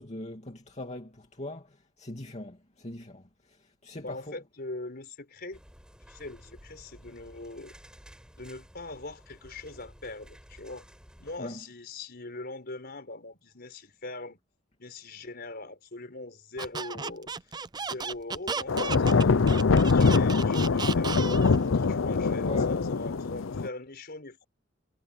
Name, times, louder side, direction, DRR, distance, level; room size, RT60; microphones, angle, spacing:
voice 1, 0.0-1.7 2.0-3.2 3.8-4.4 11.4-11.6 22.4-22.8, left 1 dB, 35° left, 2.6 m, -40 dB
voice 2, 3.9-5.6 6.1-7.7 8.4-10.8 11.2-14.4 14.8-17.3 17.7-19.4 19.9-24.4, left 2 dB, 50° left, 4.8 m, -41 dB
sound 1, 5.5-11.4, equal, 5° right, 6.6 m, -53 dB
Squeak, 16.6-21.6, right 5 dB, 20° right, 0.5 m, -34 dB
sound 2, 18.7-23.7, left 4 dB, 80° left, 0.6 m, -23 dB
head